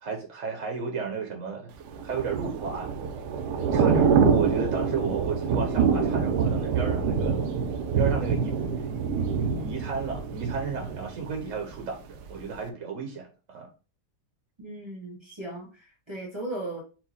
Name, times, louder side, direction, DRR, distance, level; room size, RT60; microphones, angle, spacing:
voice 1, 0.0-2.9 3.5-7.4 7.9-13.7, right 6 dB, 60° right, 1.0 m, -33 dB
Thunder / Rain, 1.9-11.8 12.2-12.4, right 6 dB, 85° right, 1.2 m, -25 dB
voice 2, 14.6-16.8, right 2 dB, 20° right, 0.9 m, -37 dB
4.5 x 2.2 x 4.1 m
omnidirectional pair, 1.7 m